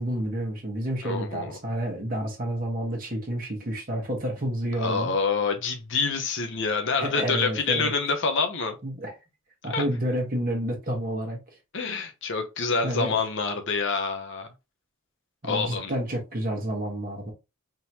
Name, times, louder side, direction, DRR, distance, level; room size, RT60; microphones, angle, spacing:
voice 1, 0.0-5.1 7.0-7.9 8.8-9.1 9.6-11.4 12.8-13.2 15.4-17.3, right 1 dB, 40° right, 1.3 m, -29 dB
voice 2, 1.0-1.6 4.8-8.8 9.7-9.8 11.7-14.5 15.4-15.9, left 4 dB, 55° left, 0.7 m, -27 dB
3.6 x 3.0 x 2.8 m
head